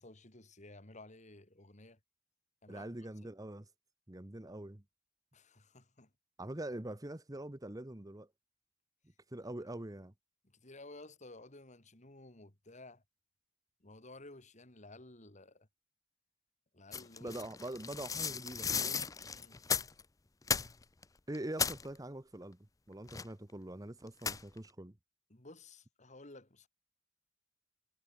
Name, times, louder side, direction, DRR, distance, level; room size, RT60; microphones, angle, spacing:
voice 1, 0.0-2.0 2.6-2.9 3.2-3.3 5.3-6.1 9.7-9.8 10.4-13.0 13.8-15.7 16.7-17.4 19.2-19.6 25.3-26.7, left 2 dB, 40° left, 2.8 m, -54 dB
voice 2, 2.7-3.7 4.1-4.8 6.4-8.3 9.3-10.1 17.2-19.0 21.3-22.6 22.9-24.9, right 1 dB, 20° right, 1.0 m, -44 dB
sound 1, 16.9-20.0 20.4-21.0 21.3-21.9 23.1-23.5 24.2-24.6, left 6 dB, 15° left, 0.5 m, -36 dB
head